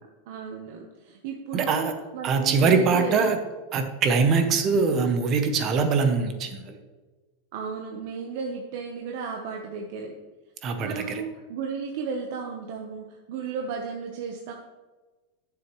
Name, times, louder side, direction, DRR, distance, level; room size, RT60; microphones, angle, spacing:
voice 1, 0.3-3.2 4.3-4.7 7.5-10.1 10.8-14.5, right 5 dB, 50° right, 1 dB, 0.9 m, -34 dB
voice 2, 1.5-1.9 2.2-3.4 3.7-6.8 10.6-11.2, right 5 dB, 25° right, 7 dB, 0.8 m, -23 dB
12.0 x 7.0 x 3.1 m, 1.2 s
supercardioid pair, 175°, 0 cm